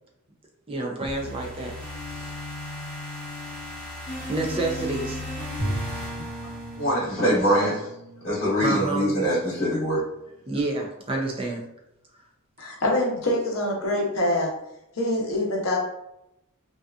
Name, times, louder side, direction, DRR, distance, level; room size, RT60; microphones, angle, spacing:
voice 1, 0.7-1.7 2.1-2.3 4.3-5.2 8.6-9.1 10.5-11.6, right 2 dB, 25° right, 0 dB, 0.4 m, -28 dB
sound 1, 1.0-7.2, left 1 dB, 20° left, 1.0 m, -36 dB
Bowed string instrument, 5.6-10.4, right 1 dB, 80° right, 1.1 m, -37 dB
voice 2, 6.8-7.9 8.2-10.0, equal, 45° left, -8 dB, 1.0 m, -23 dB
voice 3, 12.6-14.5 15.0-15.8, left 1 dB, 70° left, -1 dB, 0.7 m, -25 dB
2.6 x 2.3 x 2.3 m, 0.85 s
head